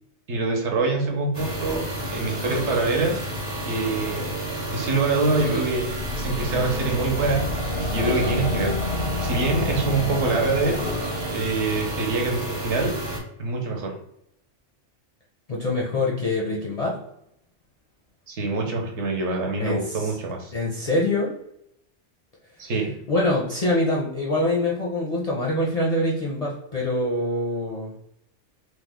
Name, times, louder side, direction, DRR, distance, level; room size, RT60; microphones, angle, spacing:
voice 1, 0.3-3.2 3.7-4.3 4.7-5.8 6.1-12.9 13.4-13.9 18.3-20.5 22.6-23.0, right 3 dB, 75° right, 1 dB, 1.0 m, -25 dB
sound 1, 1.3-13.2, right 1 dB, 30° right, 0.6 m, -30 dB
sound 2, 5.8-11.4, left 3 dB, 80° left, 0.9 m, -30 dB
voice 2, 15.5-17.0 19.6-20.2 20.5-21.3 23.1-27.9, left 2 dB, 50° left, -3 dB, 0.5 m, -24 dB
2.9 x 2.1 x 3.5 m, 0.77 s
omnidirectional pair, 1.2 m